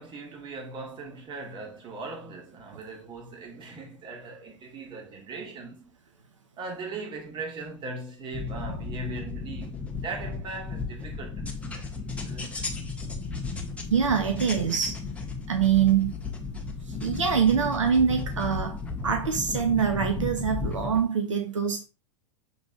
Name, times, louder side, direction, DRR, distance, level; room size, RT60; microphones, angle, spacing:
voice 1, 0.0-5.9 6.6-11.9 12.2-12.7, right 3 dB, 30° right, 2.2 m, -39 dB
sound 1, 8.3-21.0, left 4 dB, 10° left, 1.4 m, -34 dB
voice 2, 13.9-15.0 15.5-16.1 16.9-21.8, right 7 dB, 75° right, 1.0 m, -24 dB
6.9 x 4.1 x 3.8 m
figure-of-eight pair, 95°, 16 cm